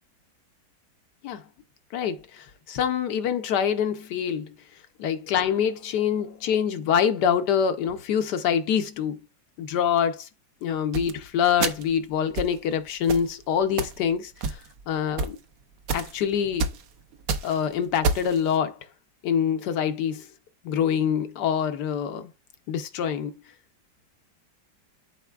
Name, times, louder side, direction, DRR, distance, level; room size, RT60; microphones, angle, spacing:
voice 1, 1.9-4.6 5.0-9.2 9.6-10.3 10.6-14.6 14.9-15.4 15.9-16.7 17.4-18.8 19.2-20.3 20.6-22.3 22.7-23.3, left 8 dB, 70° left, 1.2 m, -25 dB
sound 1, 10.9-11.1 11.6-11.9 12.4-12.6 13.1-13.3 13.8-14.0 14.4-14.8 15.2-15.3 15.9-16.1 16.6-16.8 17.1-17.6 18.0-18.4, right 4 dB, 65° right, 0.9 m, -27 dB
11.5 x 4.1 x 2.3 m
omnidirectional pair, 2.0 m